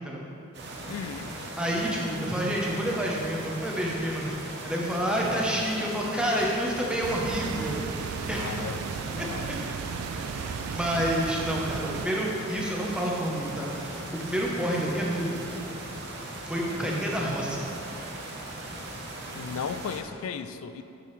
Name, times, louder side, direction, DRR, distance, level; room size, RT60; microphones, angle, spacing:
sound 1, 0.5-20.0, right 1 dB, 50° right, 0.9 m, -39 dB
voice 1, 0.9-1.3 8.3-8.8 9.2-9.5 19.3-20.8, left 6 dB, 75° left, 11 dB, 0.3 m, -35 dB
voice 2, 1.6-8.5 9.2-9.3 10.1-15.4 16.4-17.7, equal, 5° right, -3 dB, 0.8 m, -29 dB
sound 2, 7.0-12.1, right 6 dB, 85° right, 0.3 m, -35 dB
8.3 x 6.8 x 3.2 m, 2.9 s
head